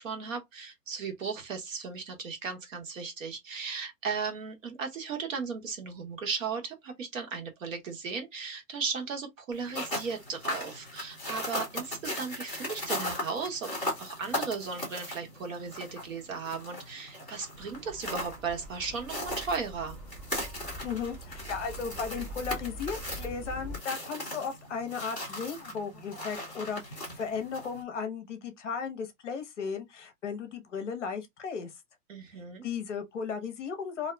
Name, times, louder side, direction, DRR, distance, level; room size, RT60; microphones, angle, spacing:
voice 1, 0.0-13.7 14.0-20.0 32.1-32.7, right 5 dB, 55° right, 1.1 m, -36 dB
sound 1, 9.5-27.8, left 1 dB, 5° right, 1.1 m, -38 dB
sound 2, 17.5-23.8, equal, 20° right, 1.4 m, -44 dB
voice 2, 20.8-31.7 32.6-34.1, left 6 dB, 50° left, 0.9 m, -35 dB
2.7 x 2.3 x 3.2 m
hypercardioid pair, 180°, 48 cm